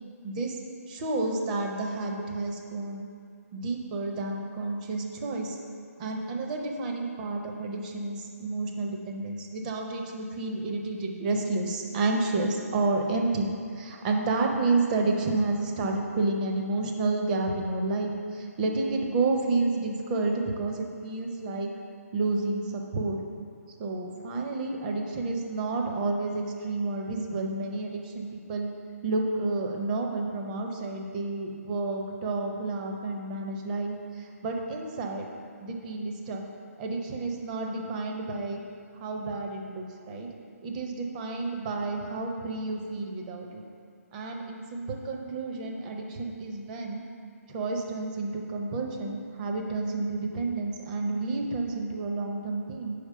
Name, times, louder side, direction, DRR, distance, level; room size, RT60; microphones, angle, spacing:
voice 1, 0.2-0.6 0.9-3.1 3.5-5.6 6.0-21.7 22.1-23.2 23.8-28.7 29.0-35.3 35.6-36.4 36.8-38.6 39.0-40.3 40.6-43.6 44.1-47.0 47.5-52.9, right 3 dB, 30° right, 2 dB, 0.7 m, -30 dB
5.1 x 4.6 x 5.5 m, 2.3 s
figure-of-eight pair, 140°, 8 cm